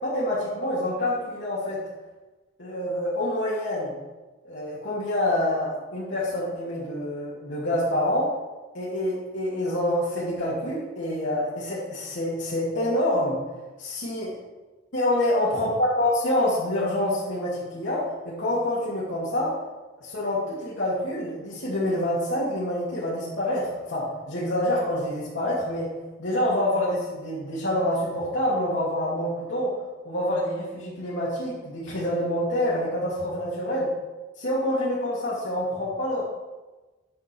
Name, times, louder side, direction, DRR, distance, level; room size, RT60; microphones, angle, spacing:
voice 1, 0.0-1.8 2.6-3.9 4.4-8.3 8.7-13.4 13.8-14.3 14.9-19.5 20.0-25.9 26.2-29.7 30.0-33.9 34.4-36.2, left 1 dB, 80° left, -8 dB, 2.6 m, -27 dB
10.0 x 6.7 x 4.6 m, 1.2 s
head